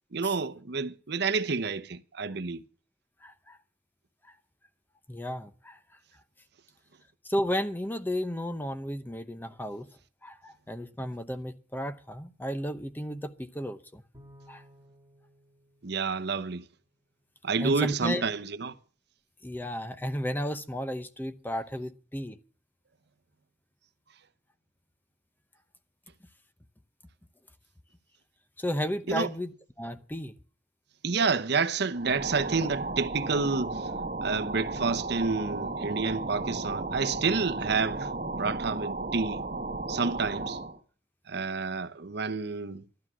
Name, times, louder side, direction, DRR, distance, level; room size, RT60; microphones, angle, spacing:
voice 1, 0.1-2.6 15.8-16.6 17.4-18.7 29.1-29.3 31.0-33.9 34.2-38.1 38.4-39.4 39.9-40.6 41.3-42.8, right 4 dB, 60° right, 0.8 m, -29 dB
voice 2, 3.2-3.6 4.2-4.4 5.1-5.8 7.2-9.9 10.2-14.0 14.5-14.6 17.6-18.3 19.4-22.4 28.6-29.5 29.8-30.3, equal, 10° left, 0.8 m, -33 dB
Bowed string instrument, 14.1-16.8, equal, 20° right, 2.2 m, -57 dB
sound 1, 31.9-40.8, right 2 dB, 40° right, 1.4 m, -34 dB
12.5 x 12.5 x 6.1 m
head